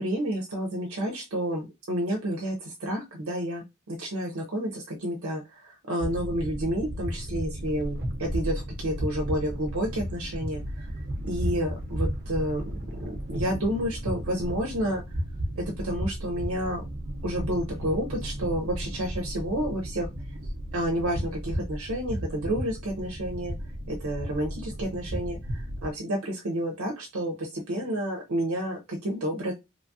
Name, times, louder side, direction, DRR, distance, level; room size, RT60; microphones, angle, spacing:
voice 1, 0.0-10.9 11.2-12.7 13.0-15.0 15.6-16.8 17.2-20.1 20.7-23.5 23.9-29.5, equal, 85° right, 1 dB, 0.6 m, -30 dB
sound 1, 6.0-25.9, equal, 50° right, 0.7 m, -34 dB
3.0 x 2.3 x 2.6 m, 0.23 s
head